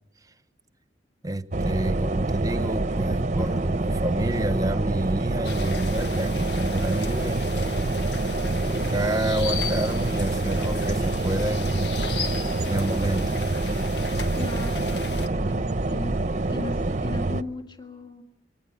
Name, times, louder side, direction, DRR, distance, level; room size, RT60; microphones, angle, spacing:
voice 1, 1.2-7.8 8.6-11.9 12.7-13.4, right 1 dB, 20° right, 13 dB, 1.0 m, -29 dB
sound 1, 1.5-17.4, right 2 dB, 40° right, 0.8 m, -26 dB
sound 2, 5.4-15.3, left 5 dB, 65° left, 1.4 m, -37 dB
voice 2, 14.3-16.2 16.5-18.2, left 3 dB, 25° left, 6 dB, 1.9 m, -38 dB
24.5 x 18.5 x 8.8 m, 0.90 s
head